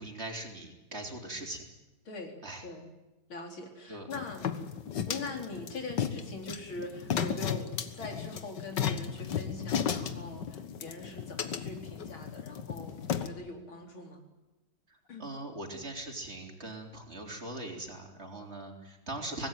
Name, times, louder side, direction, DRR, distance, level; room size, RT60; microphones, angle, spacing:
voice 1, 0.0-1.6 2.4-2.6 3.9-4.1 14.9-19.5, right 1 dB, 30° right, 2 dB, 4.0 m, -41 dB
voice 2, 3.3-4.5 5.0-14.2 15.1-15.3, left 3 dB, 90° left, 2 dB, 4.8 m, -42 dB
sound 1, 4.1-13.3, left 8 dB, 65° left, 1.9 m, -34 dB
24.5 x 19.0 x 9.2 m, 1.0 s
omnidirectional pair, 2.2 m